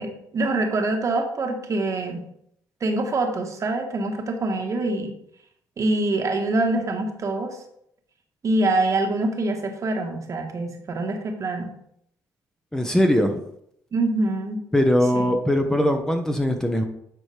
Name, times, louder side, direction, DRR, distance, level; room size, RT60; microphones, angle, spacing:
voice 1, 0.0-2.3 2.8-5.1 5.8-7.6 8.4-11.8 13.9-14.6 15.1-15.4, right 2 dB, 45° right, 3 dB, 1.3 m, -25 dB
voice 2, 12.7-13.4 14.7-16.8, left 1 dB, 5° left, 5 dB, 0.9 m, -21 dB
9.4 x 4.3 x 3.4 m, 0.72 s
supercardioid pair, 75°, 7 cm